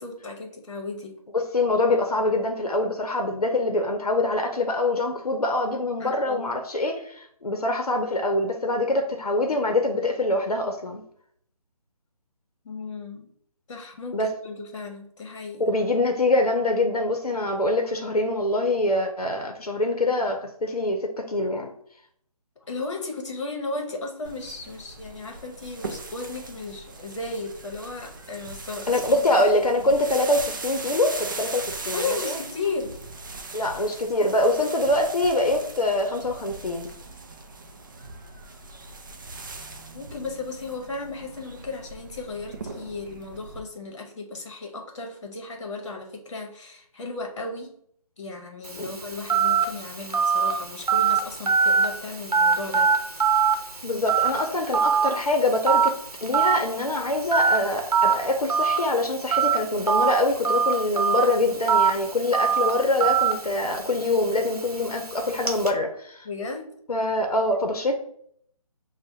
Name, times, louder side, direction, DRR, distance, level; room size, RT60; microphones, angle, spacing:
voice 1, 0.0-1.1 6.0-6.5 12.6-13.3 13.7-15.6 22.6-29.5 31.9-33.0 39.9-47.7 48.2-52.9 54.5-54.6 66.2-66.7, left 3 dB, 50° left, 3 dB, 0.9 m, -35 dB
voice 2, 1.3-11.0 14.1-14.3 15.6-21.7 28.9-32.4 33.5-36.9 48.8-48.9 53.8-55.9 56.2-66.3 66.9-67.9, left 2 dB, 85° left, 3 dB, 0.6 m, -24 dB
sound 1, 24.3-43.6, right 3 dB, 35° right, 0.4 m, -39 dB
Telephone, 48.6-65.7, right 6 dB, 85° right, 0.8 m, -24 dB
5.9 x 2.1 x 2.7 m, 0.66 s
figure-of-eight pair, 150°, 19 cm